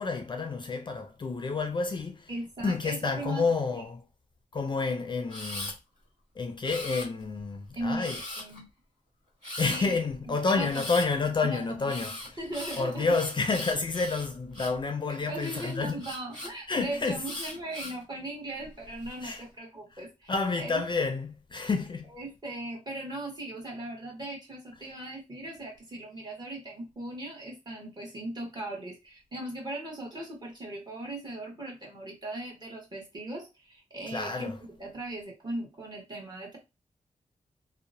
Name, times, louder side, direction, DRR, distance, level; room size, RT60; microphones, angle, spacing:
voice 1, 0.0-2.3 2.6-4.0 4.5-5.8 6.4-8.2 9.6-12.2 12.8-16.0 16.7-17.2 19.2-19.4 20.0-22.1 34.1-34.6, left 4 dB, 35° left, 0.4 m, -29 dB
voice 2, 2.3-3.4 3.7-3.8 7.7-8.7 9.7-9.9 10.3-10.8 11.4-11.9 12.4-13.2 15.3-20.8 22.1-36.6, right 1 dB, 35° right, 1.1 m, -38 dB
Camera, 5.3-5.7 6.6-7.4 8.0-8.6 9.4-9.8 10.7-11.1 11.9-14.8 15.4-16.5 17.2-18.0 18.6-19.2, left 1 dB, 65° right, 1.5 m, -39 dB
2.8 x 2.0 x 2.6 m
wide cardioid pair, 110°, 13 cm